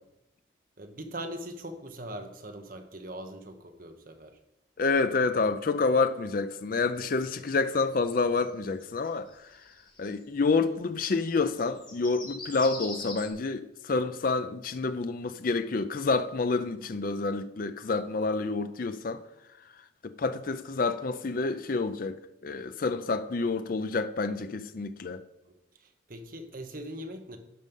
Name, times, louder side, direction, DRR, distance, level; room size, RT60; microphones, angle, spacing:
voice 1, 0.8-4.4 25.4-25.5 25.8-27.4, right 1 dB, 45° right, 1.1 m, -41 dB
voice 2, 4.8-9.6 10.0-19.2 20.0-25.2, left 3 dB, 45° left, 0.4 m, -28 dB
sound 1, 7.0-10.2 11.1-13.3, left 2 dB, 25° left, 2.7 m, -43 dB
11.5 x 5.3 x 5.4 m
head